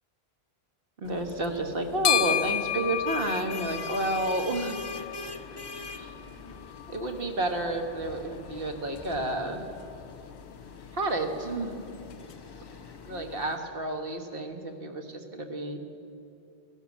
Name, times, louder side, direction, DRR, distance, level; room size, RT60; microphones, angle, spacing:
sound 1, 1.0-13.6, left 9 dB, 80° left, 1.0 m, -35 dB
voice 1, 1.0-4.8 5.9-6.1 6.9-9.6 10.9-11.8 13.0-15.8, right 2 dB, 60° right, 4 dB, 1.6 m, -31 dB
sound 2, 2.8-14.1, left 3 dB, 25° left, 0.7 m, -44 dB
16.0 x 11.5 x 7.2 m, 2.8 s
omnidirectional pair, 1.1 m